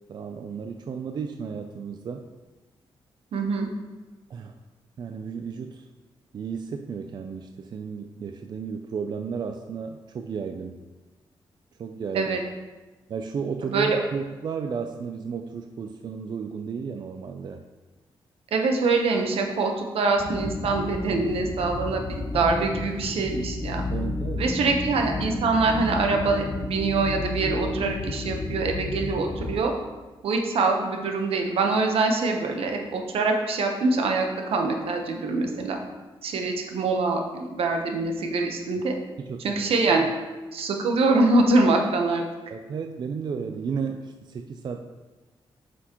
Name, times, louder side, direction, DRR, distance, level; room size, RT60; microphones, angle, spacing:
voice 1, 0.1-2.3 4.3-4.6 5.0-5.9 6.3-10.8 11.8-12.4 13.1-17.6 23.9-24.5 39.2-39.7 42.5-44.9, right 6 dB, 50° right, 5 dB, 0.4 m, -33 dB
voice 2, 3.3-3.7 12.1-12.4 13.7-14.0 18.5-23.8 24.4-29.7 30.2-35.8 36.2-38.9 39.4-40.1 40.5-42.2, right 3 dB, 80° right, 3 dB, 0.9 m, -24 dB
sound 1, 20.2-29.6, left 2 dB, 25° left, 0.6 m, -32 dB
7.7 x 6.2 x 3.0 m, 1.2 s
wide cardioid pair, 140°, 10 cm